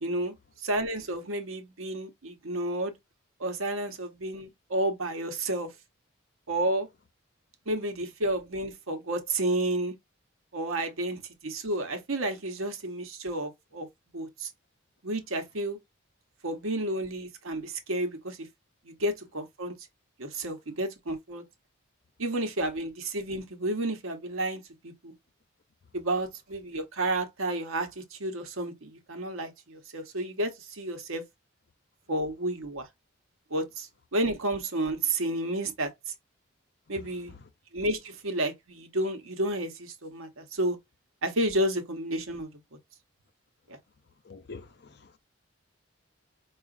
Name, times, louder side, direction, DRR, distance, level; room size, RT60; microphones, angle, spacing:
voice 1, 0.0-2.9 3.4-5.7 6.5-6.9 7.7-9.9 10.5-13.9 14.1-14.5 15.0-15.8 16.4-18.4 18.8-19.7 20.2-21.4 22.2-25.1 25.9-31.2 32.1-32.9 33.5-35.9 36.9-37.3 37.7-40.8 41.2-42.5, right 1 dB, 80° right, 1.0 m, -31 dB
voice 2, 44.3-44.7 45.0-45.2, left 4 dB, 50° left, 0.5 m, -44 dB
4.8 x 2.4 x 2.5 m
head